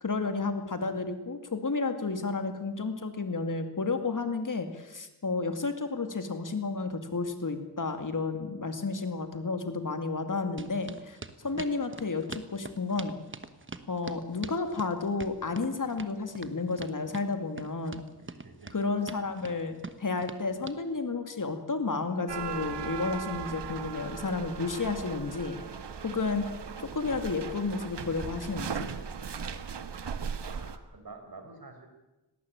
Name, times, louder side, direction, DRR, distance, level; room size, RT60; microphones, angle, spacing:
voice 1, 0.0-13.2 13.9-18.0 18.7-25.6 26.0-26.5 26.8-28.9, left 4 dB, 50° left, 7 dB, 2.3 m, -32 dB
sound 1, 10.6-20.8, right 3 dB, 30° right, 1.3 m, -44 dB
voice 2, 18.2-19.3 30.4-31.9, right 3 dB, 55° right, 5 dB, 4.7 m, -49 dB
sound 2, 22.3-30.8, right 7 dB, 75° right, 1.5 m, -38 dB
19.0 x 18.0 x 8.8 m, 1.0 s
wide cardioid pair, 95°, 42 cm